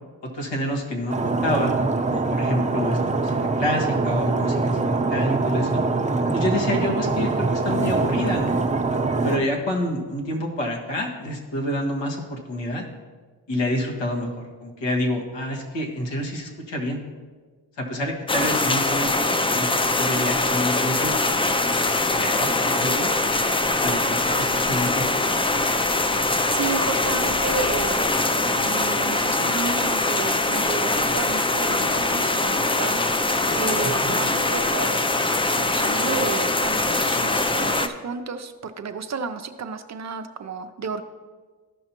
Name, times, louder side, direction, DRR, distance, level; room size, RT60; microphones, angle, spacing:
voice 1, 0.3-1.8 2.1-5.8 6.3-8.6 9.2-12.8 13.5-14.3 14.6-17.0 17.8-21.4 22.2-23.1 23.8-25.1 34.0-34.1, left 1 dB, 75° left, 0 dB, 1.7 m, -28 dB
Stream, 1.1-9.4, right 3 dB, 15° right, 0.9 m, -23 dB
sound 1, 18.3-37.9, left 2 dB, 15° left, 0.4 m, -22 dB
voice 2, 26.5-28.2 28.6-35.3 35.5-41.1, right 5 dB, 40° right, 8 dB, 0.5 m, -32 dB
14.0 x 5.5 x 3.0 m, 1.5 s
cardioid pair, 80°, 44 cm